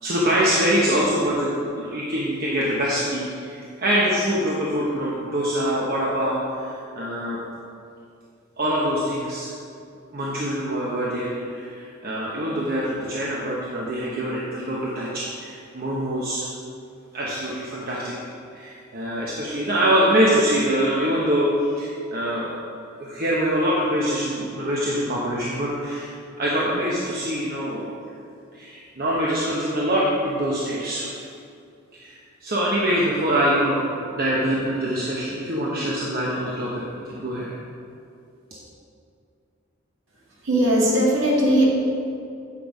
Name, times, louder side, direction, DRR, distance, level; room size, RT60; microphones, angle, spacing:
voice 1, 0.0-7.4 8.6-9.5 10.1-16.5 17.1-18.1 18.5-22.5 23.0-27.9 28.5-31.2 32.0-32.1 32.4-33.8 34.1-37.5, equal, 45° right, -5 dB, 1.0 m, -24 dB
voice 2, 40.4-41.7, right 1 dB, 65° right, -5 dB, 2.1 m, -18 dB
8.4 x 5.4 x 5.2 m, 2.5 s
head